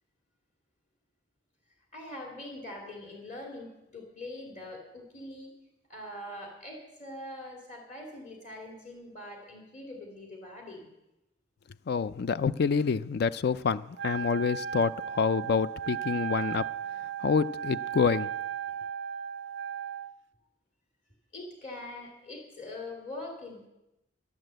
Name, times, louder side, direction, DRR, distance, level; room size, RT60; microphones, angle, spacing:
voice 1, 1.9-5.5 5.9-10.9 21.3-23.7, left 1 dB, 40° left, 2.8 m, -43 dB
voice 2, 11.9-16.7 17.2-18.3, left 5 dB, 60° left, 0.4 m, -27 dB
Wind instrument woodwind instrument, 14.0-20.1, right 9 dB, 75° right, 0.4 m, -36 dB
12.0 x 11.0 x 7.8 m
head